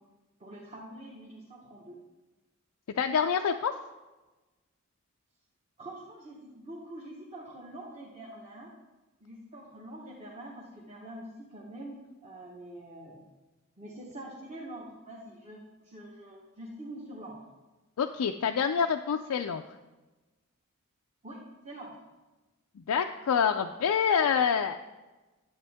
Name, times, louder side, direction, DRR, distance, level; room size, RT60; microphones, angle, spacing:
voice 1, 0.4-2.0 5.8-8.7 9.2-13.2 13.8-17.4 21.2-21.4 21.6-21.9, right 1 dB, 30° right, -4 dB, 1.2 m, -45 dB
voice 2, 3.0-3.7 18.0-19.6 22.8-24.8, left 7 dB, 85° left, 5 dB, 0.4 m, -27 dB
11.0 x 7.9 x 3.5 m, 1.1 s
head